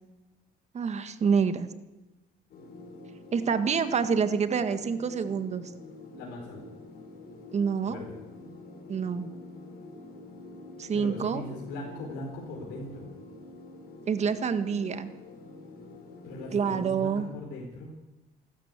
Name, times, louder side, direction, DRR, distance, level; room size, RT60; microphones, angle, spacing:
voice 1, 0.7-1.7 3.3-5.6 7.5-8.0 8.9-9.3 10.8-11.4 14.1-15.1 16.5-17.3, right 6 dB, 40° right, 10 dB, 1.6 m, -27 dB
sound 1, 2.5-16.9, left 2 dB, 65° left, 5.3 m, -47 dB
voice 2, 6.1-6.6 7.8-8.1 10.9-13.1 16.2-17.9, left 1 dB, 85° left, -2 dB, 4.8 m, -39 dB
29.0 x 12.5 x 8.3 m, 1.1 s
cardioid pair, 110°, 17 cm